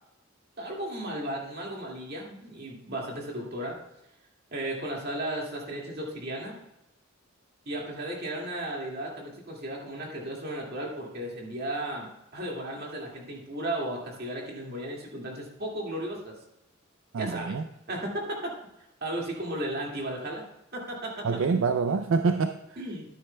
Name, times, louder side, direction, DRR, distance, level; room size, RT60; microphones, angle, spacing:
voice 1, 0.6-3.8 4.5-6.6 7.7-16.3 17.2-17.5 17.9-18.5 19.0-20.4 20.7-21.2 22.8-23.0, right 1 dB, 50° right, -2 dB, 2.1 m, -35 dB
voice 2, 17.1-17.7 21.2-22.8, right 4 dB, 70° right, 9 dB, 0.4 m, -26 dB
12.5 x 9.5 x 2.2 m, 0.90 s
head